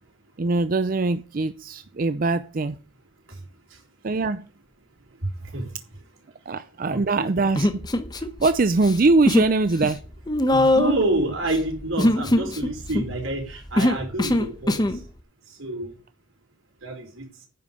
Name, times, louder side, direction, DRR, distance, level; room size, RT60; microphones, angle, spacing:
voice 1, 0.4-2.8 4.0-4.4 6.5-7.8 8.2-10.0, right 3 dB, 45° right, 0.5 m, -22 dB
voice 2, 6.9-7.3 10.5-14.8 15.6-15.9 16.8-17.2, right 1 dB, 90° right, 4.5 m, -28 dB
Human voice, 7.6-8.5 8.8-9.5 9.8-15.0, left 1 dB, 20° left, 0.9 m, -22 dB
10.0 x 5.6 x 7.8 m
head